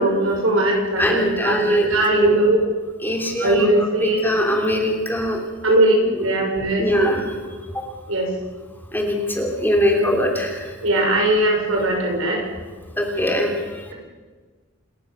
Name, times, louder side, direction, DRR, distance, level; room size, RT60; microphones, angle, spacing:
voice 1, 0.0-2.6 3.4-4.2 5.6-6.9 8.1-8.3 10.8-12.4, right 1 dB, 70° right, 0 dB, 6.7 m, -19 dB
voice 2, 1.0-2.4 3.0-3.7 4.0-5.4 5.7-6.2 6.8-7.3 7.7-7.8 8.9-10.7 13.0-13.9, left 1 dB, 10° left, 1 dB, 3.0 m, -22 dB
27.5 x 13.5 x 7.0 m, 1.4 s
head